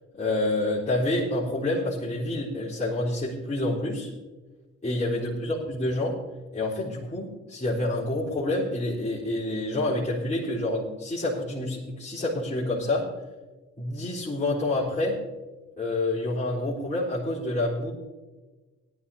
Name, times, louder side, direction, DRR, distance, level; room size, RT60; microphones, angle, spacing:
voice 1, 0.1-4.1 4.8-6.2 6.5-13.1 13.8-15.2 15.8-17.9, left 2 dB, 25° left, -10 dB, 4.2 m, -28 dB
18.0 x 12.5 x 2.9 m, 1.3 s
cardioid pair, 90°, 30 cm